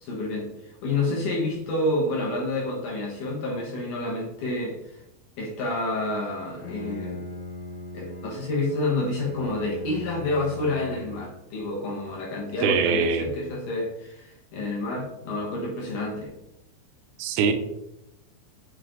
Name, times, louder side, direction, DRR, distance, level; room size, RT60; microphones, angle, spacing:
voice 1, 0.0-4.8 5.4-7.2 7.9-16.3, left 2 dB, 65° left, -3 dB, 2.0 m, -29 dB
Bowed string instrument, 6.4-11.5, left 3 dB, 85° left, 3.7 m, -40 dB
voice 2, 12.6-13.3 17.2-17.5, right 5 dB, 85° right, 7 dB, 2.3 m, -22 dB
8.6 x 3.3 x 3.8 m, 0.83 s
omnidirectional pair, 5.3 m